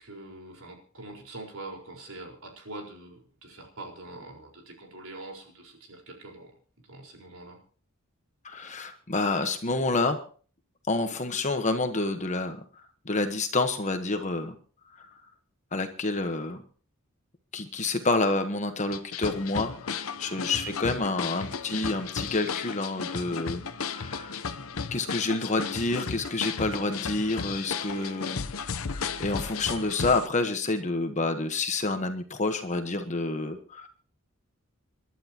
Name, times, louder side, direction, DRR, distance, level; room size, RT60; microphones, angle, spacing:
voice 1, 0.0-6.5 6.9-7.6 20.2-20.5 27.9-28.2, right 2 dB, 90° right, 1 dB, 4.6 m, -44 dB
voice 2, 8.4-10.2 10.9-12.6 13.0-14.6 15.0-15.1 15.7-16.6 17.5-24.3 24.9-28.4 28.9-33.9, left 3 dB, 35° left, 7 dB, 1.2 m, -28 dB
sound 1, 18.9-30.3, left 5 dB, 90° left, 0.8 m, -34 dB
28.0 x 11.5 x 2.9 m, 0.42 s
head